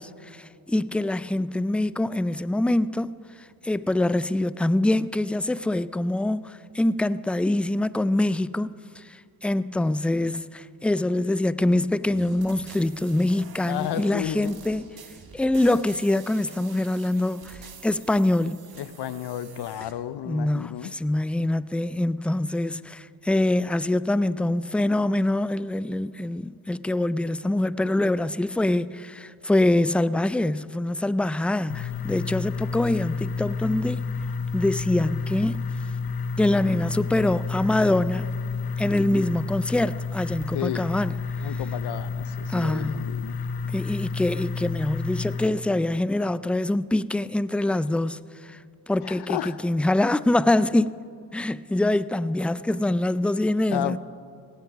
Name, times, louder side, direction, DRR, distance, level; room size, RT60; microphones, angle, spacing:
voice 1, 0.0-3.1 3.6-9.0 9.4-14.9 15.3-18.6 20.3-34.0 34.5-35.7 36.4-38.3 38.8-41.1 42.5-43.1 43.7-48.2 48.5-48.6 48.9-50.9 51.3-54.0, left 1 dB, 5° left, 0.3 m, -24 dB
sound 1, 12.0-19.9, right 5 dB, 60° right, 1.9 m, -47 dB
voice 2, 13.7-14.6 18.8-20.9 40.5-40.9 41.4-43.4 49.0-49.6 53.7-54.0, left 12 dB, 70° left, 0.7 m, -32 dB
sound 2, 31.7-45.5, left 4 dB, 55° left, 1.0 m, -30 dB
18.0 x 17.0 x 4.7 m
cardioid pair, 60°, 42 cm